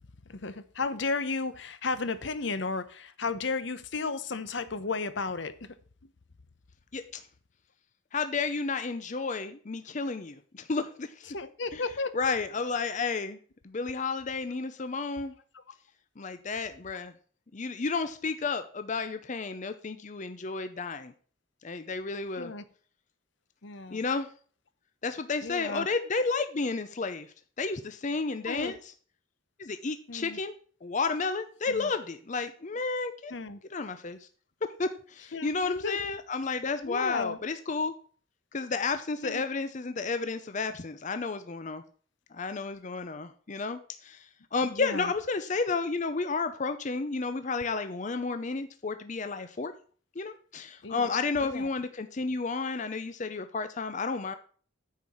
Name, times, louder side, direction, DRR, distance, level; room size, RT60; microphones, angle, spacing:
voice 1, 0.3-5.7 11.3-12.2 15.5-15.6 22.4-22.6 23.6-24.0 25.4-25.9 28.5-28.7 30.1-30.4 31.7-31.9 33.3-33.6 35.3-36.0 36.8-37.4 39.2-39.4 44.6-45.1 50.8-51.1 51.4-51.7, left 4 dB, 65° left, 12 dB, 0.9 m, -34 dB
voice 2, 8.1-10.4 10.7-11.1 11.7-11.8 12.1-13.4 13.7-15.3 16.2-17.1 17.5-21.1 21.6-22.5 23.9-24.3 25.0-27.3 27.6-28.8 29.6-30.5 30.8-33.3 33.7-34.2 34.8-34.9 35.4-37.9 38.5-41.8 42.4-43.8 44.5-49.7 50.2-54.3, left 4 dB, 40° left, 10 dB, 0.6 m, -31 dB
9.4 x 4.8 x 7.1 m, 0.44 s
head